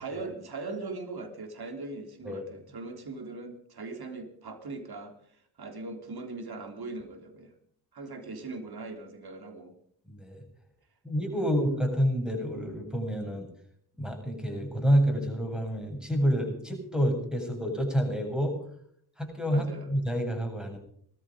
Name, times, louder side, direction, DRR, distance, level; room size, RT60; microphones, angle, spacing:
voice 1, 0.0-7.5 7.9-9.8 19.5-19.9, right 3 dB, 50° right, 7 dB, 3.8 m, -40 dB
voice 2, 10.1-10.4 11.0-13.5 14.0-18.6 19.2-20.8, equal, ahead, 4 dB, 7.8 m, -28 dB
19.5 x 13.5 x 5.2 m, 0.63 s
supercardioid pair, 50°, 48 cm